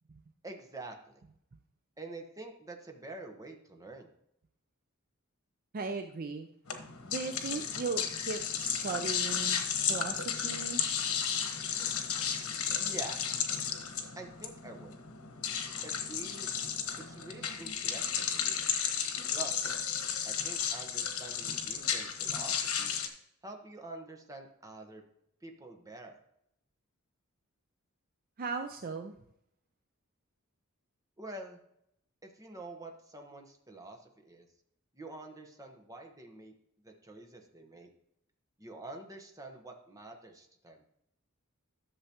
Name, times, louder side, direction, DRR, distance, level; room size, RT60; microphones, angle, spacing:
voice 1, 0.4-1.2 2.0-4.1 12.8-13.3 14.2-15.0 15.8-16.5 17.0-18.6 19.3-19.6 20.2-23.0 23.4-25.0 25.4-26.2 31.2-31.6 32.2-34.5 34.9-36.5 36.8-37.9 38.6-40.8, right 2 dB, 15° right, 3 dB, 1.1 m, -47 dB
voice 2, 5.7-6.5 7.0-10.8 28.4-29.2, right 4 dB, 40° right, 6 dB, 0.5 m, -37 dB
sound 1, 6.7-23.1, left 7 dB, 85° left, 1.1 m, -33 dB
11.5 x 6.8 x 2.9 m, 0.76 s
head